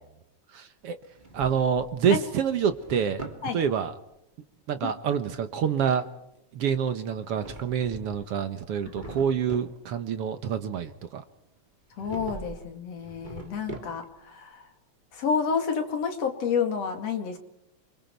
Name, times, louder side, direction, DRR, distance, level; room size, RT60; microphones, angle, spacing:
voice 1, 0.5-1.0 1.3-3.2 3.5-4.0 4.7-6.1 6.5-11.2, right 7 dB, 60° right, 10 dB, 1.8 m, -27 dB
Drawer open or close, 1.0-2.0 2.4-3.5 7.1-8.3 8.6-9.8 11.9-12.6 13.0-14.2, right 2 dB, 15° right, 2.4 m, -42 dB
voice 2, 12.0-14.6 15.1-17.4, left 6 dB, 55° left, 5 dB, 3.4 m, -29 dB
28.5 x 25.0 x 4.6 m, 0.81 s
omnidirectional pair, 3.4 m